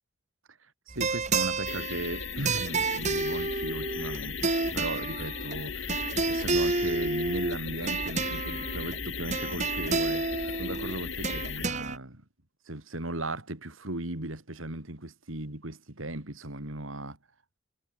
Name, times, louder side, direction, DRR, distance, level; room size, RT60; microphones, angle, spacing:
sound 1, 0.9-12.0, right 3 dB, 35° right, 2.4 m, -30 dB
voice 1, 0.9-12.2 12.7-17.2, right 1 dB, 85° right, 3.8 m, -37 dB
sound 2, 1.7-11.7, left 6 dB, 70° left, 4.0 m, -37 dB
head